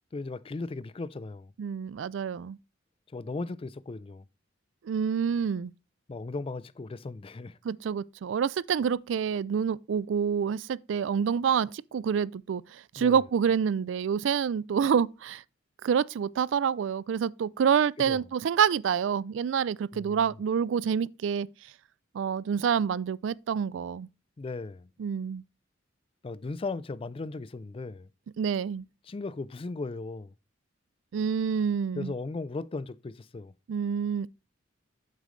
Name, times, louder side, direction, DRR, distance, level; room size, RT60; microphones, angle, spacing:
voice 1, 0.1-1.5 3.1-4.3 6.1-7.6 13.0-13.2 18.0-18.2 19.9-20.3 24.4-24.9 26.2-28.1 29.1-30.3 31.9-33.5, left 3 dB, 30° left, 0.4 m, -37 dB
voice 2, 1.6-2.6 4.9-5.7 7.6-15.4 15.8-21.5 22.1-24.1 25.0-25.4 28.4-28.9 31.1-32.1 33.7-34.3, right 7 dB, 70° right, 0.3 m, -27 dB
8.4 x 7.6 x 3.1 m
head